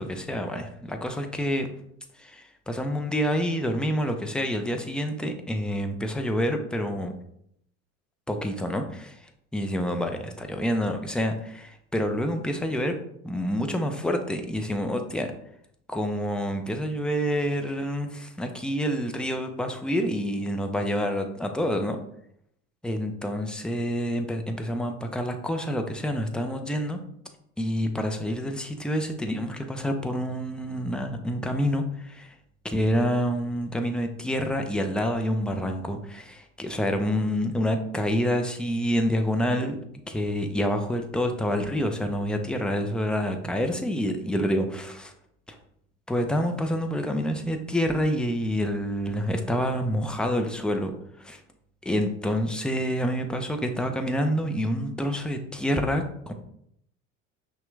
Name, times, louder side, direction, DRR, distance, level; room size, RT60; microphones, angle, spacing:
voice 1, 0.0-1.7 2.2-7.1 8.3-13.0 13.2-15.3 15.9-22.0 22.8-27.0 27.6-32.3 32.6-39.8 40.1-45.1 45.5-45.6 46.1-50.9 51.2-51.4 51.8-56.3, equal, ahead, 5 dB, 0.5 m, -27 dB
5.8 x 2.4 x 3.2 m, 0.72 s
hypercardioid pair, 80°, 39 cm